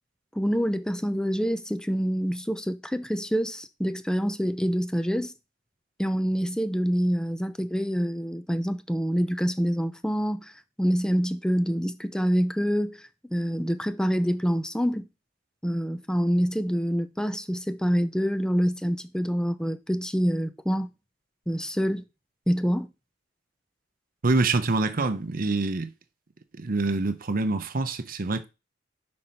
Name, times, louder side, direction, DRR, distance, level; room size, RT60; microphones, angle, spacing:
voice 1, 0.3-5.3 6.0-10.5 10.8-13.0 13.3-15.1 15.6-20.9 21.5-22.0 22.5-22.9, equal, 5° left, 0.5 m, -26 dB
voice 2, 24.2-25.9 26.5-28.5, right 3 dB, 50° right, 0.7 m, -26 dB
6.0 x 4.3 x 5.3 m
head